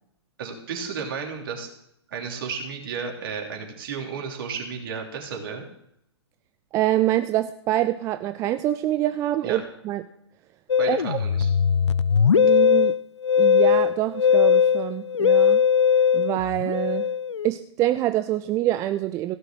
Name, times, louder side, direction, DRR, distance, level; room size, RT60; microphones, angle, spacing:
voice 1, 0.4-1.7 2.1-5.6 9.4-9.6 10.8-11.5, right 6 dB, 50° right, 1 dB, 3.2 m, -33 dB
voice 2, 6.7-9.6 9.9-10.0 10.9-11.2 12.3-12.9 13.4-15.6 16.1-17.1 17.4-19.3, right 14 dB, 20° right, 10 dB, 0.4 m, -25 dB
Musical instrument, 10.7-17.5, left 7 dB, 80° left, 0.4 m, -20 dB
16.5 x 6.3 x 7.6 m, 0.76 s
figure-of-eight pair, 115°, 14 cm